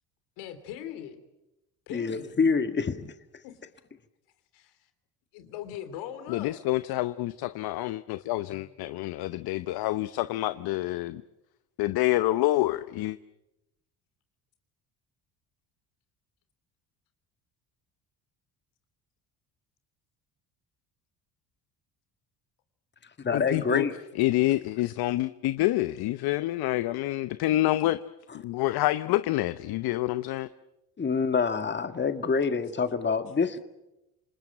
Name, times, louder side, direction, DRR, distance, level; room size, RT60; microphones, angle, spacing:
voice 1, 0.4-1.2 1.9-2.4 3.4-3.6 4.5-4.9 5.3-6.5, left 10 dB, 85° left, 10 dB, 3.1 m, -40 dB
voice 2, 1.9-3.1 23.2-23.9 31.0-33.6, left 5 dB, 25° left, 9 dB, 1.8 m, -26 dB
voice 3, 6.3-11.2 11.8-13.2 23.3-23.9 24.2-28.0 28.4-30.5, left 16 dB, 65° left, 14 dB, 0.8 m, -27 dB
27.5 x 20.0 x 8.9 m, 0.95 s
supercardioid pair, 85°, 40 cm